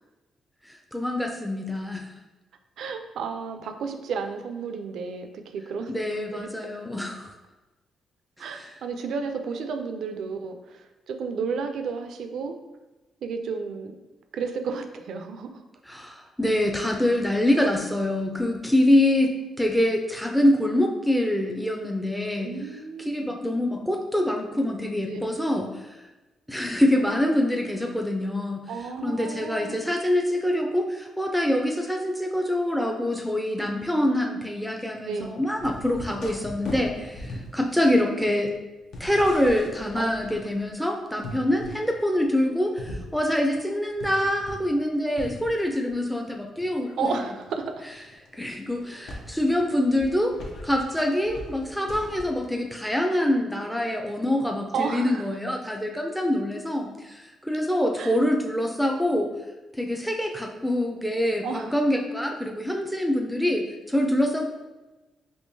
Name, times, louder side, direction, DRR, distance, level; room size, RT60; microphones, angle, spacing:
voice 1, 0.9-2.1 5.9-7.3 8.4-8.7 15.9-22.5 23.1-25.9 26.5-28.7 29.0-38.5 39.0-47.1 48.4-50.4 50.6-59.3 59.8-64.4, left 1 dB, ahead, 2 dB, 0.4 m, -25 dB
voice 2, 2.8-5.9 6.3-6.7 8.4-12.6 13.2-13.9 14.3-15.6 22.4-23.3 25.1-25.3 28.7-29.8 35.1-35.4 40.0-40.1 47.0-47.6 54.7-55.3 58.0-58.2 61.4-61.7, right 5 dB, 75° right, 6 dB, 0.3 m, -32 dB
sound 1, 35.6-40.8 41.2-41.8 42.2-44.9 45.2-46.0 46.6-52.4, left 1 dB, 70° left, 0.6 m, -41 dB
3.6 x 2.9 x 2.7 m, 1.1 s
cardioid pair, 70°, 0 cm